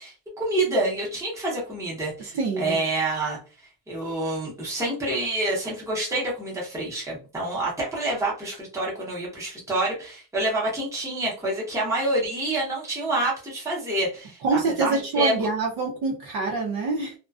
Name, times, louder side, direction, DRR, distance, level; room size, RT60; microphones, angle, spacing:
voice 1, 0.0-3.4 3.9-15.5, right 2 dB, 5° right, -5 dB, 0.8 m, -27 dB
voice 2, 2.2-2.8 14.4-17.1, right 3 dB, 55° right, -1 dB, 0.7 m, -26 dB
2.4 x 2.1 x 2.3 m, 0.34 s
cardioid pair, 165°, 46 cm